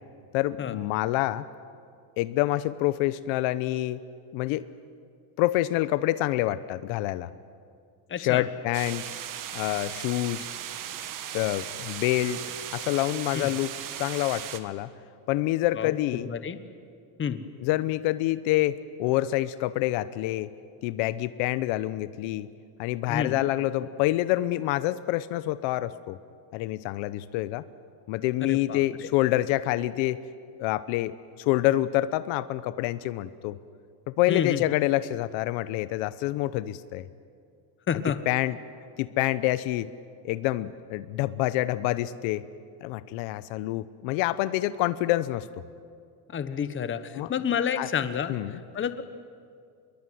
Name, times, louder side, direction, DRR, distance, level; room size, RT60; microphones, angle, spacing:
voice 1, 0.3-1.5 2.2-4.0 4.3-4.7 5.4-7.3 8.2-9.0 9.5-10.5 11.3-12.4 12.7-13.7 14.0-14.9 15.3-16.3 17.6-20.5 20.8-22.5 22.8-26.2 26.5-27.6 28.1-30.2 30.6-33.6 34.1-37.1 38.3-38.6 39.0-39.9 40.2-42.4 42.8-45.5 47.1-47.3 47.8-47.9 48.3-48.6, left 16 dB, 70° left, 15 dB, 1.0 m, -27 dB
voice 2, 8.1-8.5 13.3-13.5 15.8-16.6 17.2-17.4 23.1-23.4 28.4-29.1 34.3-34.6 37.9-38.2 46.3-49.0, left 7 dB, 25° left, 11 dB, 1.3 m, -30 dB
sound 1, 8.7-14.6, right 10 dB, 40° right, 1.8 m, -37 dB
26.5 x 22.0 x 9.5 m, 2.3 s
cardioid pair, 150°, 48 cm